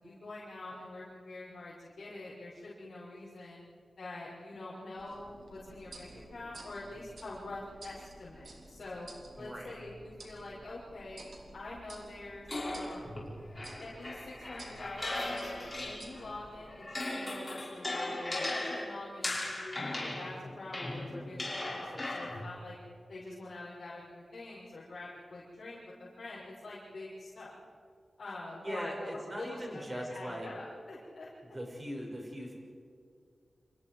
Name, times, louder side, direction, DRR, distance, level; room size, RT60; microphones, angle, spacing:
voice 1, 0.0-3.6 4.0-9.1 9.4-11.2 11.5-13.2 13.8-22.8 23.1-27.6 28.2-31.3, left 2 dB, 70° left, -8 dB, 6.1 m, -45 dB
sound 1, 5.0-16.6, right 2 dB, 70° right, 4.4 m, -53 dB
voice 2, 9.4-9.7 28.6-30.5 31.5-32.5, equal, 25° right, -1 dB, 6.3 m, -40 dB
sound 2, 12.5-16.3 16.7-22.5, left 1 dB, 25° left, 5.9 m, -38 dB
30.0 x 27.5 x 4.8 m, 2.2 s
wide cardioid pair, 115°, 0 cm